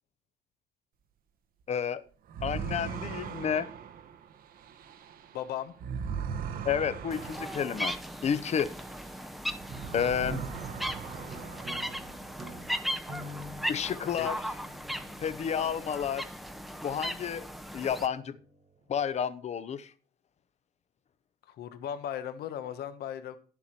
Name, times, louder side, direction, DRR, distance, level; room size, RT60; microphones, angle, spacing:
voice 1, 1.7-2.0 2.4-3.7 6.6-7.9 8.2-8.7 9.9-10.4 13.7-14.3 15.2-16.2 16.8-17.5 17.7-18.4 18.9-19.9, left 8 dB, 40° left, 15 dB, 0.8 m, -30 dB
sound 1, 2.3-9.2 9.5-12.2, right 7 dB, 60° right, 1.0 m, -40 dB
voice 2, 5.3-5.7 14.2-14.3 21.5-23.4, left 10 dB, 70° left, 11 dB, 1.1 m, -37 dB
sound 2, 7.1-18.1, equal, ahead, 0.7 m, -37 dB
sound 3, 10.2-18.6, right 1 dB, 40° right, 1.6 m, -47 dB
10.0 x 7.2 x 4.3 m, 0.40 s
cardioid pair, 110°, 17 cm